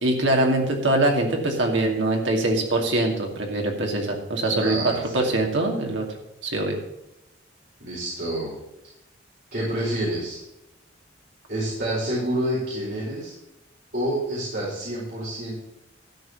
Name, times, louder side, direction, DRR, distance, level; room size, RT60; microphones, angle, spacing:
voice 1, 0.0-4.8 5.1-6.0 6.4-6.8, right 2 dB, 70° right, 1 dB, 2.4 m, -23 dB
voice 2, 4.5-5.4 7.8-8.5 9.5-10.4 11.5-13.3 13.9-15.5, right 1 dB, 50° right, -8 dB, 4.8 m, -28 dB
13.0 x 5.4 x 6.9 m, 0.91 s
head